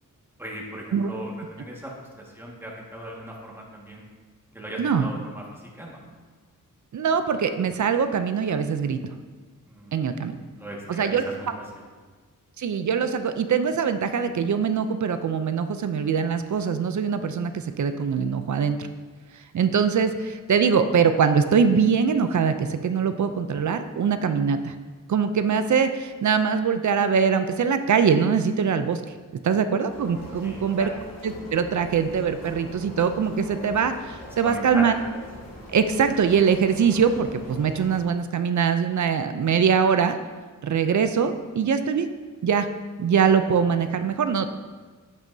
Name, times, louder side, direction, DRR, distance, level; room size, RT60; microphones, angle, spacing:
voice 1, 0.4-4.0 4.5-6.0 9.6-9.9 10.6-11.5 30.4-30.9 34.4-34.9, equal, 5° right, -3 dB, 1.7 m, -38 dB
voice 2, 4.8-5.1 6.9-9.0 9.9-10.4 10.9-11.3 12.6-18.9 19.5-24.7 25.1-29.0 29.4-30.9 31.2-34.9 35.7-40.2 40.6-42.1 42.4-42.7 43.0-44.5, right 6 dB, 60° right, 9 dB, 0.5 m, -22 dB
sound 1, 29.9-38.0, left 1 dB, 85° left, 2.5 m, -42 dB
8.9 x 7.4 x 2.7 m, 1.4 s
wide cardioid pair, 95°, 34 cm